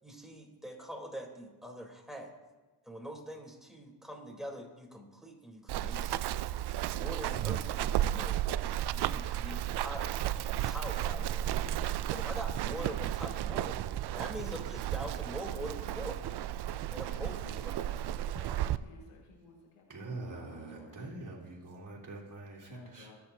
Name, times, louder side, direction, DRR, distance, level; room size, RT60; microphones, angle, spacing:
voice 1, 0.0-2.4 2.8-6.4 7.0-8.4 8.9-10.2 10.6-11.5 12.1-13.8 14.1-16.1 16.9-17.4, equal, ahead, 0 dB, 3.6 m, -43 dB
Run, 5.7-18.8, right 12 dB, 55° right, 0.5 m, -33 dB
voice 2, 15.4-16.1 17.1-21.1 22.6-23.2, left 5 dB, 90° left, 0 dB, 2.0 m, -54 dB
voice 3, 19.9-23.1, right 2 dB, 40° right, -4 dB, 3.4 m, -44 dB
25.5 x 8.5 x 2.8 m, 1.2 s
supercardioid pair, 60°, 49 cm